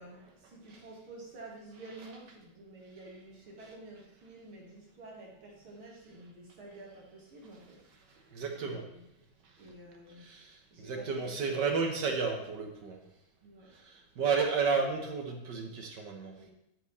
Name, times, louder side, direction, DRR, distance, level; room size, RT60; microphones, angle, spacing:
voice 1, 0.0-7.8 8.1-8.3 8.6-9.3 9.6-10.3 10.7-11.7 13.4-13.7 16.4-16.5, right 2 dB, 85° right, -2 dB, 2.8 m, -50 dB
voice 2, 8.3-8.8 10.2-10.5 10.8-13.0 14.2-16.3, right 5 dB, 60° right, 3 dB, 1.6 m, -31 dB
12.5 x 4.5 x 4.2 m, 0.83 s
omnidirectional pair, 2.2 m